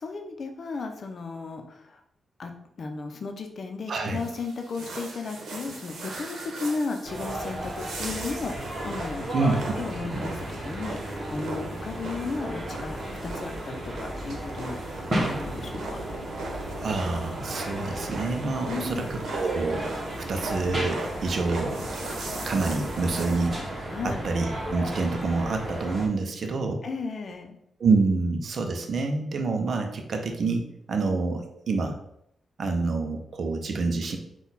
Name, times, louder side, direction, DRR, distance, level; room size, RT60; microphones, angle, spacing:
voice 1, 0.0-2.0 2.4-2.5 2.8-13.0 13.2-16.0 18.7-19.1 23.9-24.3 26.8-27.6, left 4 dB, 55° left, 5 dB, 0.6 m, -35 dB
voice 2, 3.9-4.2 9.3-9.8 16.8-21.7 22.4-23.6 24.0-26.8 27.8-30.6 30.9-32.0 32.6-34.2, right 3 dB, 60° right, 4 dB, 0.6 m, -27 dB
sound 1, 4.1-23.5, right 2 dB, 85° right, 0.9 m, -39 dB
sound 2, 7.0-26.1, right 1 dB, 35° right, 1.1 m, -34 dB
4.1 x 2.3 x 4.0 m, 0.76 s
cardioid pair, 95°, 0 cm